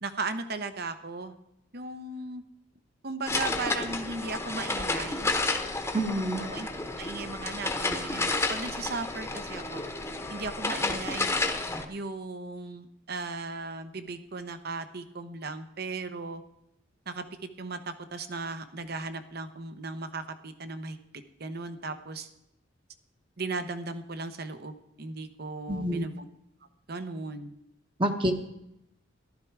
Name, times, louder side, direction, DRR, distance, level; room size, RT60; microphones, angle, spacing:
voice 1, 0.0-1.3 1.7-2.4 3.0-5.3 6.4-6.7 7.0-9.8 10.3-11.4 11.9-16.4 17.1-21.0 21.4-22.3 23.4-26.3 26.9-27.5 28.2-28.3, right 3 dB, 55° right, 9 dB, 0.9 m, -37 dB
sound 1, 3.3-11.8, left 2 dB, 15° left, 1.0 m, -31 dB
voice 2, 5.9-6.4 25.7-26.1 28.0-28.3, right 1 dB, 25° right, 4 dB, 1.0 m, -27 dB
14.5 x 12.0 x 4.7 m, 0.83 s
head